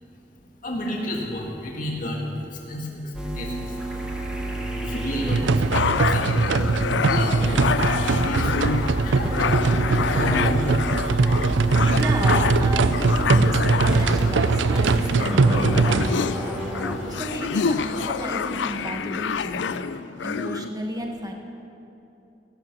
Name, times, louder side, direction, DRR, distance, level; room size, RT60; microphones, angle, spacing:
voice 1, 0.6-3.8 4.8-6.6 7.1-8.6 9.0-9.8 10.2-10.6, left 1 dB, 45° left, -2 dB, 1.8 m, -31 dB
sound 1, 3.1-18.9, right 1 dB, 5° right, 1.6 m, -31 dB
sound 2, 5.3-16.1, right 3 dB, 80° right, 0.5 m, -21 dB
sound 3, 5.7-20.7, left 6 dB, 75° left, 0.5 m, -28 dB
voice 2, 11.8-16.6 17.1-19.7 20.2-21.3, right 1 dB, 20° right, 2 dB, 1.4 m, -33 dB
15.0 x 12.0 x 6.7 m, 2.9 s
head